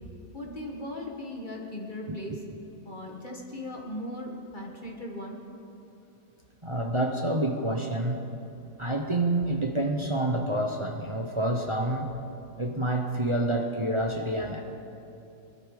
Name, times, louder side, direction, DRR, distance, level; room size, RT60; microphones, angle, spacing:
voice 1, 0.3-2.4 2.8-5.4, left 1 dB, 30° left, 0 dB, 1.8 m, -38 dB
voice 2, 6.6-8.3 8.8-12.1 12.6-14.6, right 1 dB, 30° right, 2 dB, 0.6 m, -28 dB
20.5 x 12.5 x 5.0 m, 2.8 s
omnidirectional pair, 1.8 m